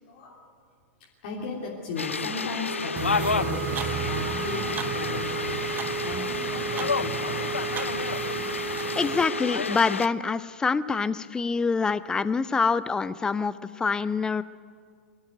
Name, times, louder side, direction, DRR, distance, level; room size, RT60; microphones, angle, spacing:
voice 1, 0.0-0.4 1.2-7.6, left 4 dB, 50° left, -4 dB, 3.2 m, -36 dB
sound 1, 2.0-10.1, left 5 dB, 75° left, 0.5 m, -30 dB
sound 2, 2.6-9.6, right 9 dB, 70° right, 1.0 m, -34 dB
sound 3, 3.0-9.2, right 9 dB, 25° right, 0.8 m, -36 dB
voice 2, 9.0-14.4, left 4 dB, 10° left, 16 dB, 0.5 m, -26 dB
23.0 x 13.0 x 9.4 m, 2.1 s
figure-of-eight pair, 100°, 7 cm